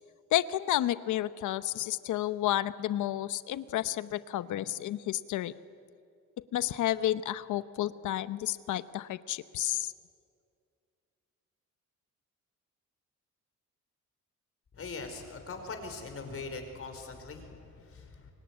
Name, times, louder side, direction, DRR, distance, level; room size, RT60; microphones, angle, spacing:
voice 1, 0.3-5.5 6.5-9.9, left 13 dB, 80° left, 15 dB, 0.9 m, -31 dB
voice 2, 14.7-18.3, left 4 dB, 50° left, 5 dB, 4.9 m, -41 dB
26.0 x 22.5 x 9.7 m, 2.4 s
cardioid pair, 90°, 30 cm